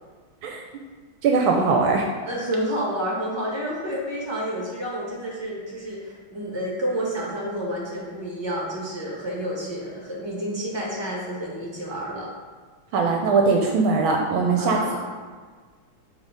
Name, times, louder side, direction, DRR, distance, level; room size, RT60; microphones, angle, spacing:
voice 1, 1.2-2.0 12.9-14.8, right 4 dB, 75° right, 1 dB, 1.4 m, -20 dB
voice 2, 2.2-12.3 14.5-15.0, equal, 15° right, -4 dB, 1.6 m, -30 dB
7.4 x 3.8 x 5.1 m, 1.5 s
omnidirectional pair, 2.4 m